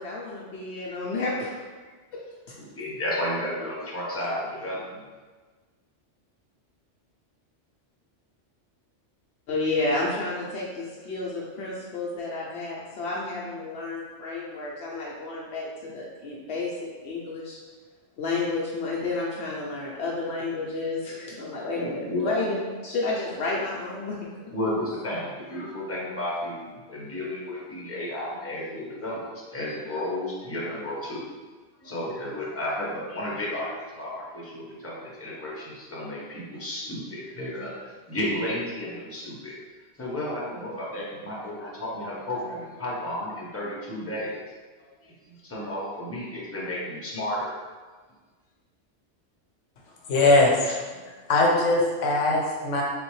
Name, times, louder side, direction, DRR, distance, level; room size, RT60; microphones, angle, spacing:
voice 1, 0.0-1.6 2.5-2.6 9.5-17.6 18.2-24.2, left 3 dB, 65° left, -4 dB, 0.8 m, -31 dB
voice 2, 2.6-5.0 21.8-22.3 24.5-31.2 31.8-39.6 40.0-44.3 44.8-47.5, left 1 dB, 15° left, -6 dB, 0.9 m, -32 dB
voice 3, 50.1-50.8 51.3-52.8, left 2 dB, 85° left, -1 dB, 1.1 m, -21 dB
3.9 x 3.4 x 3.1 m, 1.4 s
omnidirectional pair, 1.2 m